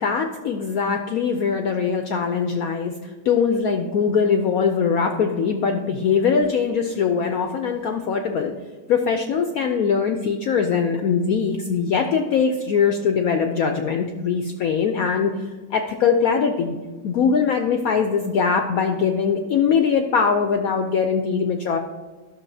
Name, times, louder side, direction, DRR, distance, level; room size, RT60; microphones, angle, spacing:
voice 1, 0.0-8.5 8.9-16.7 17.0-21.8, left 6 dB, 80° left, 5 dB, 0.7 m, -22 dB
12.0 x 6.4 x 2.7 m, 1.3 s
omnidirectional pair, 2.1 m